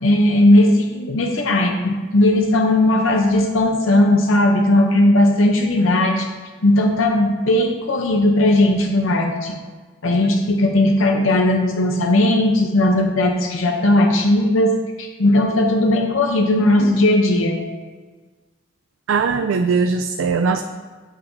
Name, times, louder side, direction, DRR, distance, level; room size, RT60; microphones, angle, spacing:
voice 1, 0.0-6.3 6.6-9.5 10.0-17.6, left 1 dB, 85° left, 3 dB, 0.7 m, -17 dB
voice 2, 19.1-20.6, right 5 dB, 80° right, 7 dB, 0.3 m, -19 dB
9.5 x 5.7 x 2.7 m, 1.4 s
head